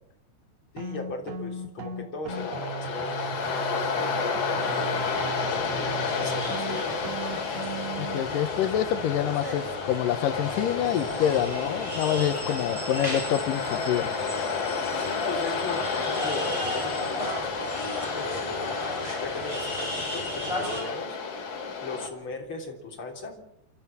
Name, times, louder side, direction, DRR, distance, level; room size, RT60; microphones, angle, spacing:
voice 1, 0.7-5.0 5.5-7.1 14.9-17.7 18.0-18.8 19.2-21.2 21.8-23.4, left 3 dB, 35° left, 2 dB, 3.9 m, -38 dB
sound 1, 0.8-8.2, right 4 dB, 80° right, 4.2 m, -37 dB
Waves surf, 2.3-22.1, left 5 dB, 50° left, 3.8 m, -31 dB
sound 2, 4.6-20.8, equal, 5° right, 7.1 m, -35 dB
voice 2, 8.0-14.1, left 10 dB, 70° left, 11 dB, 2.4 m, -27 dB
28.0 x 14.0 x 7.4 m, 0.77 s
omnidirectional pair, 4.7 m